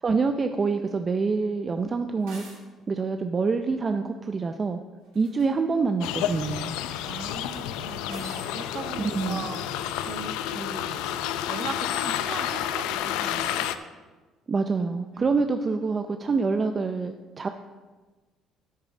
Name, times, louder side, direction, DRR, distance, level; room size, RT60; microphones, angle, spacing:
voice 1, 0.0-2.4 2.9-4.8 5.1-6.7 9.0-9.5 14.5-17.5, right 4 dB, 35° right, 7 dB, 0.5 m, -26 dB
sound 1, 2.2-2.6 5.0-5.5 8.1-8.6, right 3 dB, 90° right, 2.8 m, -45 dB
sound 2, 6.0-13.8, left 11 dB, 90° left, 0.5 m, -30 dB
voice 2, 7.0-9.6 10.1-11.0 11.5-13.7 15.1-15.3, right 4 dB, 55° right, 6 dB, 1.2 m, -39 dB
10.5 x 9.2 x 3.8 m, 1.3 s
cardioid pair, 90°, 0 cm